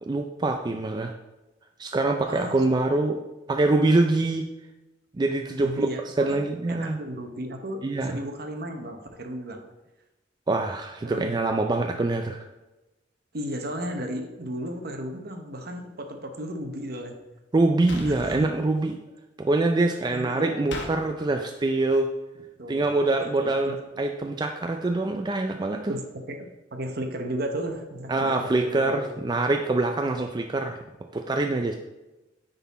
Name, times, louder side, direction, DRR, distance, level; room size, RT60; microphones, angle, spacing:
voice 1, 0.0-1.1 1.8-3.2 3.5-4.5 5.1-5.9 6.2-7.0 7.8-8.2 10.5-12.5 17.5-19.0 19.4-22.1 22.7-25.9 28.1-30.8 31.1-31.7, right 2 dB, 25° right, 4 dB, 0.4 m, -24 dB
voice 2, 2.3-2.6 5.6-6.4 6.7-9.6 11.0-11.3 13.3-17.2 18.1-18.5 20.1-20.8 22.6-23.8 25.9-29.0, equal, 60° right, 5 dB, 0.9 m, -34 dB
sound 1, 17.9-18.4 20.7-20.9, left 2 dB, 75° left, 1.2 m, -35 dB
9.4 x 4.0 x 4.1 m, 1.0 s
head